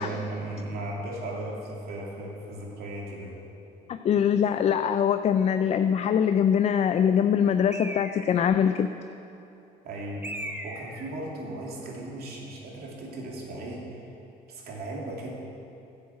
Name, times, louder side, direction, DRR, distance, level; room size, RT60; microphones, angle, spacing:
voice 1, 0.0-3.3 9.8-10.3 10.6-14.0 14.5-15.3, right 1 dB, 65° right, -3 dB, 2.7 m, -36 dB
voice 2, 3.9-8.9, left 8 dB, 40° left, 9 dB, 0.4 m, -23 dB
Bird, 7.7-8.6 10.2-11.1, right 1 dB, 10° right, 0.9 m, -38 dB
11.0 x 7.3 x 7.4 m, 2.8 s
cardioid pair, 110°, 17 cm